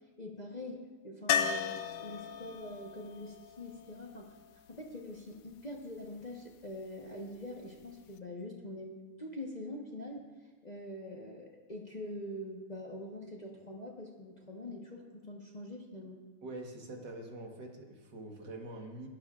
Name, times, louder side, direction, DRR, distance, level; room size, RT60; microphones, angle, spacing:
voice 1, 0.2-4.4 4.7-10.3 10.6-16.2, left 1 dB, 30° left, -1 dB, 0.8 m, -44 dB
sound 1, 1.3-5.2 7.8-7.9 8.2-8.3, left 8 dB, 85° left, 1.5 m, -36 dB
voice 2, 16.4-19.1, right 2 dB, 55° right, 1 dB, 1.9 m, -45 dB
21.5 x 11.5 x 2.5 m, 1.3 s
omnidirectional pair, 2.4 m